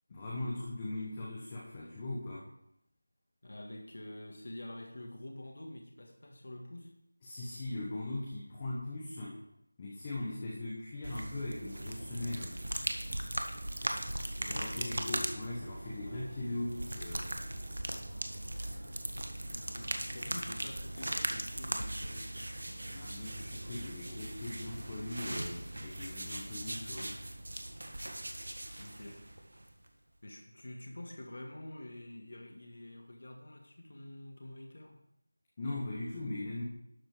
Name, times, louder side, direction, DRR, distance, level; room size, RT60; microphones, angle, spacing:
voice 1, 0.1-2.5 7.2-9.4 9.8-12.6 14.5-17.3 19.7-19.8 22.9-27.2 35.6-36.6, left 2 dB, 15° left, -5 dB, 1.2 m, -40 dB
voice 2, 3.4-6.9 14.4-15.1 19.4-23.1 28.8-29.3 30.2-35.0, left 1 dB, 45° left, 2 dB, 1.9 m, -47 dB
sound 1, 11.0-29.9, right 1 dB, 65° right, 1.5 m, -39 dB
12.0 x 7.1 x 5.0 m, 0.75 s
figure-of-eight pair, 175°, 0 cm